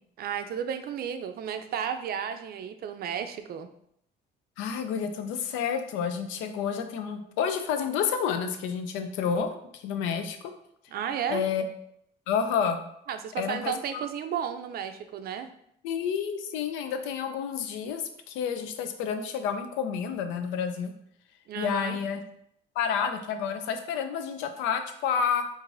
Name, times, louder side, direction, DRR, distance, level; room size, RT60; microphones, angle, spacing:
voice 1, 0.2-3.7 10.9-11.4 13.1-15.5 21.5-22.0, right 8 dB, 55° right, 8 dB, 0.4 m, -33 dB
voice 2, 4.6-10.5 11.3-11.7 12.3-12.8 13.4-14.1 15.8-20.9 21.6-22.2 22.8-25.4, left 7 dB, 90° left, 8 dB, 0.5 m, -30 dB
4.6 x 2.6 x 2.5 m, 0.73 s
cardioid pair, 95°, 19 cm